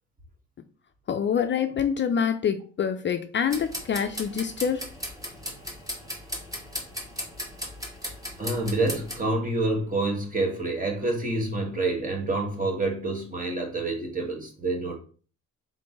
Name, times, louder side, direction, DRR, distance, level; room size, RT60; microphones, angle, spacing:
voice 1, 1.1-4.9, left 7 dB, 40° left, 0.4 m, -26 dB
sound 1, 3.5-9.2, left 1 dB, 10° right, 1.6 m, -37 dB
voice 2, 8.4-15.0, right 2 dB, 25° right, 1.6 m, -27 dB
3.8 x 3.8 x 3.7 m
cardioid pair, 90°, 30 cm